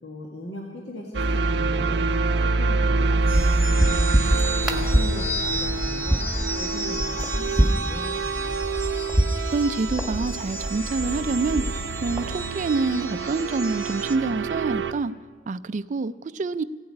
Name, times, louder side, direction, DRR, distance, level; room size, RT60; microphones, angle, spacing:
voice 1, 0.0-4.0 4.6-6.2 6.6-8.6, left 1 dB, 70° left, -2 dB, 1.8 m, -38 dB
sound 1, 1.1-14.9, right 3 dB, 80° right, 0.7 m, -27 dB
sound 2, 3.2-12.4, equal, 5° right, 1.4 m, -26 dB
sound 3, 3.3-14.2, equal, 15° left, 1.0 m, -35 dB
voice 2, 9.5-11.6 12.0-15.1 15.5-16.6, right 4 dB, 45° right, 14 dB, 0.4 m, -26 dB
15.5 x 7.9 x 9.6 m, 1.5 s
head